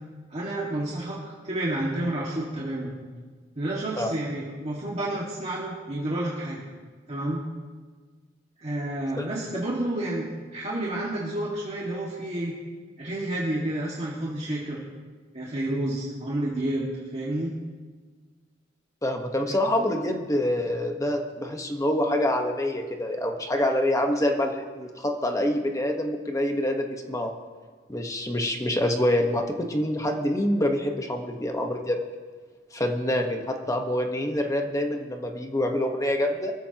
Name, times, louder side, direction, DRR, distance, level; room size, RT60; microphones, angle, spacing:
voice 1, 0.3-2.9 3.6-6.7 7.1-7.4 8.6-10.3 10.5-12.5 13.0-14.8 15.3-17.5 19.5-19.6, right 1 dB, 35° right, -5 dB, 2.0 m, -30 dB
voice 2, 19.0-27.3 27.9-32.0 32.7-36.5, left 1 dB, 15° left, 3 dB, 1.2 m, -26 dB
23.5 x 14.5 x 3.0 m, 1.5 s
head